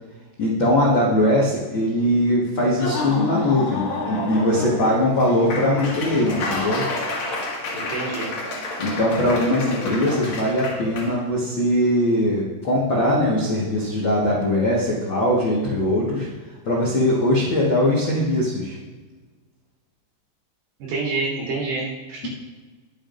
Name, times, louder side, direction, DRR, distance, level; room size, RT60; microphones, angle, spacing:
voice 1, 0.4-6.8 8.8-16.3 16.6-18.8, left 1 dB, 80° left, -5 dB, 1.0 m, -21 dB
Laughter / Applause, 2.7-11.1, left 2 dB, 60° left, 3.5 m, -29 dB
voice 2, 7.7-8.3 20.8-22.3, right 3 dB, 75° right, -5 dB, 5.4 m, -27 dB
21.0 x 7.5 x 2.6 m, 1.3 s
omnidirectional pair, 5.0 m